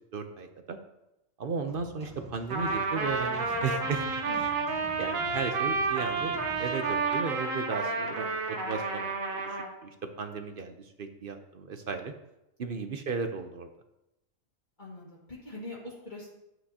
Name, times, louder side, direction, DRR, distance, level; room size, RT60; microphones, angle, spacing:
voice 1, 0.1-0.8 1.4-4.1 5.0-12.1 12.6-13.7, right 5 dB, 50° right, 7 dB, 0.7 m, -35 dB
sound 1, 1.7-7.0, equal, 5° left, 1.6 m, -48 dB
Trumpet, 2.5-9.7, right 4 dB, 85° right, 1.4 m, -30 dB
voice 2, 4.2-4.8 12.7-12.9 14.8-16.3, left 2 dB, 35° left, -5 dB, 1.8 m, -44 dB
10.5 x 7.8 x 2.8 m, 0.90 s
omnidirectional pair, 1.4 m